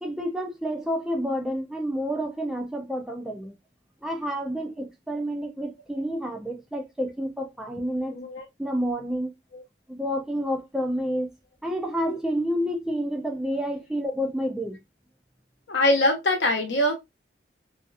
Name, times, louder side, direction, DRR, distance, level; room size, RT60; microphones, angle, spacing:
voice 1, 0.0-3.5 4.0-8.2 8.6-9.3 9.9-11.3 11.6-14.8, equal, 5° right, 0.4 m, -29 dB
voice 2, 8.1-8.5 9.5-9.7 12.1-12.2 15.7-16.9, left 1 dB, 75° left, 0.8 m, -23 dB
2.6 x 2.4 x 2.3 m
head